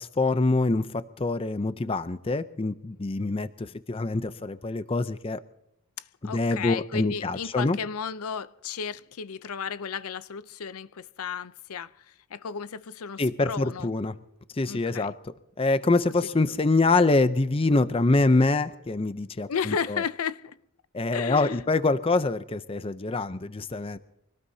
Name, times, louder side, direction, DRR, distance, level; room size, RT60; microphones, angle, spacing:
voice 1, 0.0-5.4 6.2-7.8 13.2-14.1 14.5-15.1 15.6-20.0 20.9-24.0, left 3 dB, 25° left, 0.5 m, -25 dB
voice 2, 6.0-13.9 14.6-15.1 19.5-20.6 21.1-21.7, left 6 dB, 80° left, 0.5 m, -34 dB
24.5 x 18.5 x 2.7 m
head